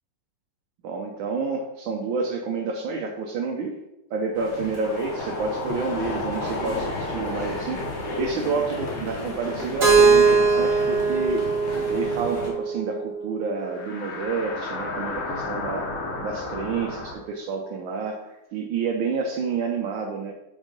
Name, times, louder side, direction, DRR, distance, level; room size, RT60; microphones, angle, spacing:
voice 1, 0.8-3.8 4.1-11.5 11.9-15.9 16.2-20.3, right 4 dB, 75° right, 1 dB, 1.4 m, -29 dB
sound 1, 4.3-12.5, left 1 dB, 40° left, 1.4 m, -34 dB
sound 2, 4.7-11.3 11.6-11.7 13.7-17.1, left 2 dB, 80° left, 2.0 m, -34 dB
Keyboard (musical), 9.8-13.7, right 5 dB, 35° right, 1.2 m, -21 dB
5.4 x 3.6 x 5.0 m, 0.93 s
omnidirectional pair, 2.4 m